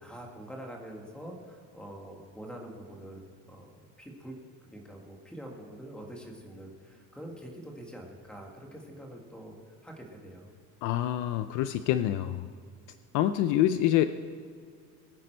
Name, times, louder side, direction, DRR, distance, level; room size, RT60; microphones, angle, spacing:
voice 1, 0.0-3.2 3.5-3.7 4.0-10.6, right 1 dB, 5° left, 0 dB, 1.5 m, -45 dB
voice 2, 10.8-12.5 13.1-14.1, left 12 dB, 55° left, 11 dB, 0.5 m, -26 dB
20.5 x 9.3 x 4.4 m, 2.1 s
cardioid pair, 175°, 37 cm